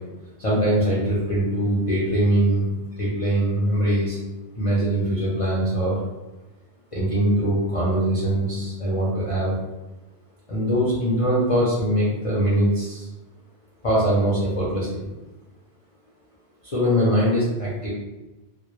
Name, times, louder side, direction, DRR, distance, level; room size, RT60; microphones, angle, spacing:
voice 1, 0.4-4.2 4.6-6.0 6.9-9.6 10.5-13.1 13.8-15.1 16.6-17.9, right 1 dB, 45° left, -8 dB, 0.4 m, -22 dB
2.1 x 2.0 x 3.0 m, 1.1 s
omnidirectional pair, 1.1 m